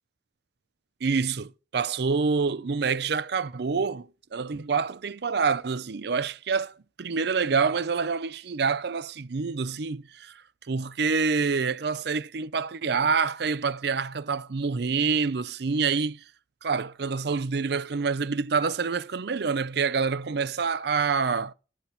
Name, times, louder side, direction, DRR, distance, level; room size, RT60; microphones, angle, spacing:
voice 1, 1.0-10.4 10.7-16.2 16.6-21.5, right 5 dB, 60° right, 0.5 m, -27 dB
19.0 x 9.8 x 2.8 m
head